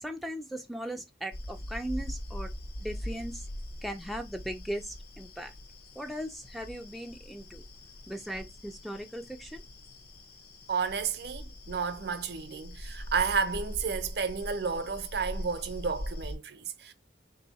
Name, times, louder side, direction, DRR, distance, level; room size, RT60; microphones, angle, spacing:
voice 1, 0.0-2.5 2.8-3.4 3.8-5.5 6.0-7.6 8.1-9.6, equal, ahead, 0.3 m, -38 dB
sound 1, 1.3-16.4, equal, 50° left, 0.6 m, -42 dB
voice 2, 10.7-16.9, right 5 dB, 60° right, 0.6 m, -32 dB
3.3 x 2.7 x 4.1 m
head